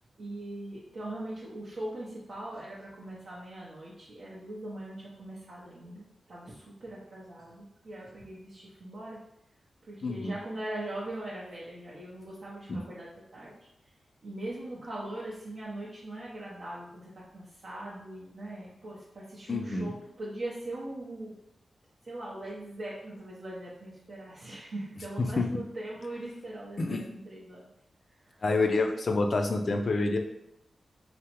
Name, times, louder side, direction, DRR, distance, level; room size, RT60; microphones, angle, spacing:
voice 1, 0.2-9.2 9.9-13.6 14.2-21.3 22.0-27.7 28.2-28.4 28.7-29.0, right 1 dB, 55° right, -7 dB, 0.6 m, -41 dB
voice 2, 10.0-10.4 12.7-12.8 19.5-19.9 25.2-25.5 26.8-27.0 28.4-30.2, left 3 dB, 45° left, 4 dB, 0.3 m, -27 dB
3.3 x 2.0 x 2.9 m, 0.80 s
wide cardioid pair, 155°, 0 cm